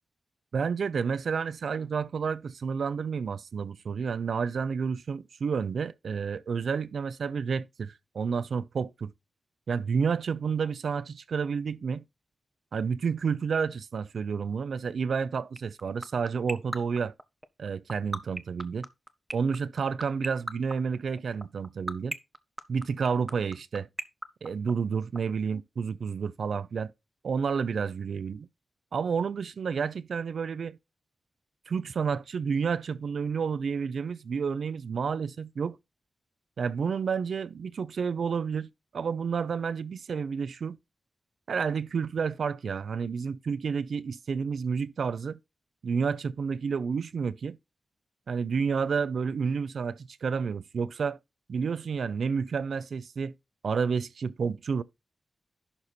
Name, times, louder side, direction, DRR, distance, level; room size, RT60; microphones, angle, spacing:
voice 1, 0.5-9.1 9.7-12.0 12.7-17.1 17.6-18.9 19.3-22.2 22.7-23.9 24.4-26.9 27.2-28.5 28.9-30.8 31.7-35.8 36.6-40.8 41.5-45.4 45.8-47.6 48.3-51.2 51.5-53.3 53.6-54.8, right 6 dB, 80° right, 0.5 m, -30 dB
sound 1, 15.6-25.2, right 1 dB, 10° right, 0.7 m, -33 dB
11.0 x 4.1 x 4.4 m
wide cardioid pair, 115°, 0 cm